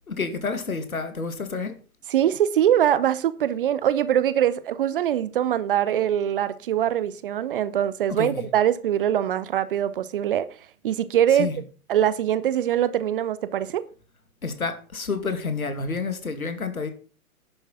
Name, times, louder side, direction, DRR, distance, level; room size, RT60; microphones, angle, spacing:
voice 1, 0.1-1.8 8.1-8.5 11.3-11.6 14.4-16.9, left 4 dB, 75° left, 2.4 m, -29 dB
voice 2, 2.1-10.5 10.8-11.5 11.9-13.8, right 10 dB, 40° right, 0.8 m, -23 dB
11.0 x 8.1 x 5.9 m
figure-of-eight pair, 115°, 43 cm